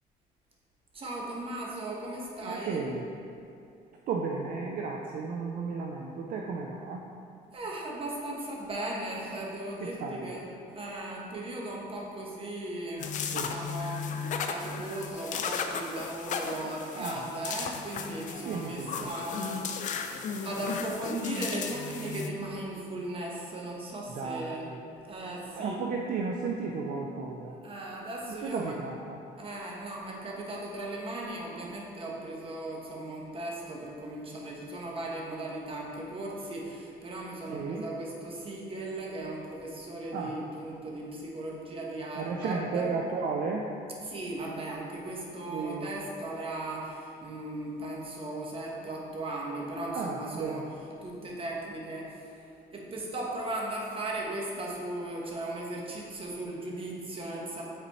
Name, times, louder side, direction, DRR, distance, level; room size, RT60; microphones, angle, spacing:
voice 1, 0.9-2.8 7.5-20.0 20.4-24.7 25.0-25.8 27.6-28.8 29.4-42.9 44.0-52.4 52.7-57.6, right 1 dB, 30° right, -2 dB, 1.2 m, -37 dB
voice 2, 2.5-3.1 4.1-7.1 9.8-10.3 13.3-13.5 16.9-17.3 18.4-19.1 24.1-24.8 25.6-27.6 28.3-29.2 37.5-37.9 40.1-40.4 42.2-43.7 45.4-45.9 49.9-50.7, right 4 dB, 55° right, 1 dB, 0.5 m, -34 dB
sound 1, 13.0-22.3, left 5 dB, 50° left, 0.5 m, -35 dB
8.3 x 4.1 x 3.1 m, 2.6 s
cardioid pair, 110°, 17 cm